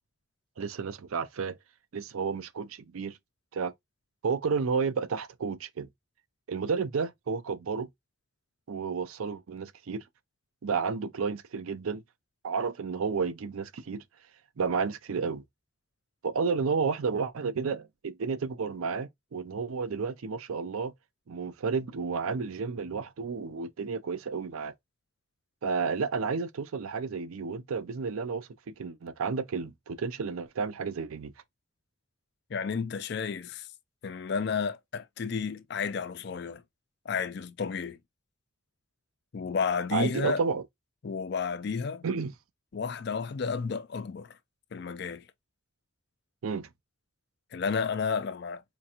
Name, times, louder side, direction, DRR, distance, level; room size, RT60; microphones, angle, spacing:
voice 1, 0.6-1.6 1.9-3.2 3.5-3.7 4.2-5.9 6.5-7.9 8.7-10.0 10.6-12.0 12.4-14.0 14.6-15.4 16.2-20.9 21.3-24.7 25.6-31.3 39.9-40.6 42.0-42.3 46.4-46.7, right 5 dB, 90° right, 0.5 m, -31 dB
voice 2, 32.5-33.7 34.0-36.6 37.1-38.0 39.3-40.4 41.0-42.0 42.7-44.4 44.7-45.3 47.5-48.6, left 5 dB, 50° left, 0.4 m, -32 dB
4.4 x 2.4 x 2.8 m
head